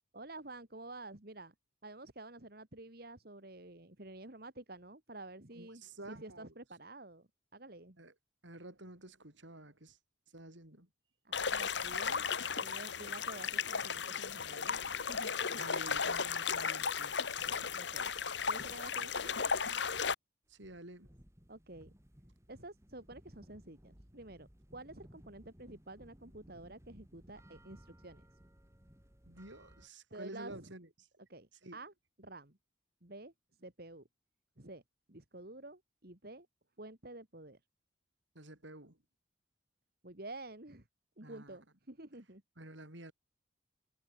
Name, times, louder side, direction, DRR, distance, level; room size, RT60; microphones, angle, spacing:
voice 1, 0.1-1.5 1.8-8.0 11.2-12.3 12.6-15.5 17.7-18.1 18.5-19.5 21.5-21.9 22.5-28.2 30.1-30.7 31.3-31.9 32.2-32.6 33.0-33.3 33.6-34.1 34.6-34.8 35.1-36.5 36.8-37.6 40.0-40.9 41.2-42.4, right 2 dB, 50° right, 2.6 m, -50 dB
voice 2, 5.5-6.5 8.0-8.1 8.4-10.0 10.3-10.9 15.6-17.4 20.5-21.2 29.3-30.9 31.6-31.8 38.3-39.0 41.2-41.6 42.6-43.1, right 1 dB, 70° right, 4.9 m, -50 dB
sound 1, 11.3-20.1, left 6 dB, 65° left, 1.3 m, -35 dB
sound 2, 20.5-29.9, equal, 15° right, 2.4 m, -60 dB
head